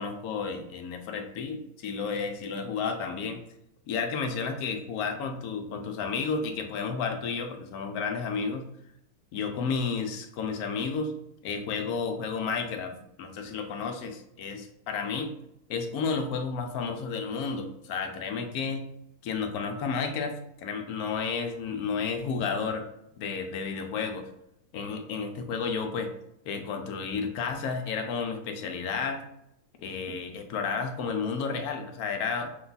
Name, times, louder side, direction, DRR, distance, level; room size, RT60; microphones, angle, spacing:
voice 1, 0.0-3.4 3.9-8.7 9.3-11.2 11.4-15.3 15.7-18.8 19.2-22.9 23.2-24.3 24.7-26.1 26.5-29.2 29.8-32.5, left 5 dB, 80° left, 5 dB, 1.1 m, -32 dB
5.4 x 2.3 x 3.9 m, 0.79 s
omnidirectional pair, 1.6 m